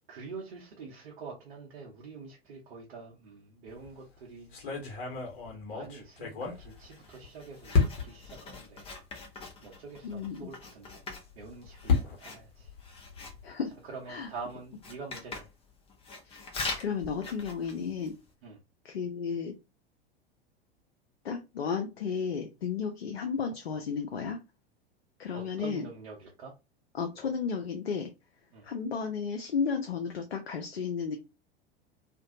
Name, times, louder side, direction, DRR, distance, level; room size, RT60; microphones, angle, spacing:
voice 1, 0.1-4.5 5.7-8.9 9.6-11.0 11.3-12.7 13.8-15.5 18.4-18.6 25.3-26.5 28.5-28.7, right 4 dB, 60° right, 0.8 m, -45 dB
sound 1, 3.7-4.0 4.5-7.3 7.7-8.3 9.0-9.1 9.4-9.5 11.2-13.5, left 4 dB, 55° left, 1.1 m, -31 dB
Writing, 6.7-18.3, left 3 dB, 20° left, 0.7 m, -44 dB
voice 2, 10.0-10.5 13.4-13.7 14.1-14.3 16.2-16.5 16.8-18.1 18.8-19.6 21.2-24.4 25.2-25.9 26.9-28.1 28.6-31.2, left 6 dB, 75° left, 0.5 m, -33 dB
2.5 x 2.2 x 2.6 m
figure-of-eight pair, 85°, 31 cm